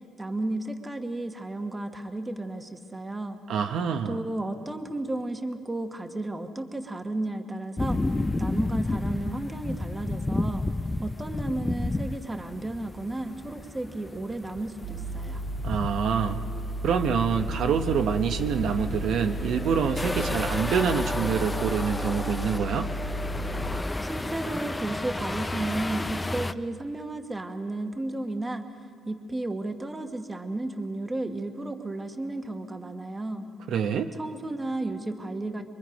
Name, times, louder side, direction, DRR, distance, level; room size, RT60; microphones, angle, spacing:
voice 1, 0.2-3.4 4.1-8.0 8.4-10.6 11.0-15.4 24.0-28.7 29.1-33.5 34.2-35.6, right 2 dB, 15° right, 6 dB, 1.2 m, -33 dB
voice 2, 3.5-4.2 15.6-16.4 16.8-22.9 33.7-34.2, right 7 dB, 65° right, 6 dB, 0.9 m, -26 dB
sound 1, 7.8-26.5, left 2 dB, 15° left, 0.5 m, -32 dB
sound 2, 14.8-23.8, right 1 dB, 50° right, 1.9 m, -34 dB
24.0 x 23.0 x 5.2 m, 2.3 s
cardioid pair, 125°, 0 cm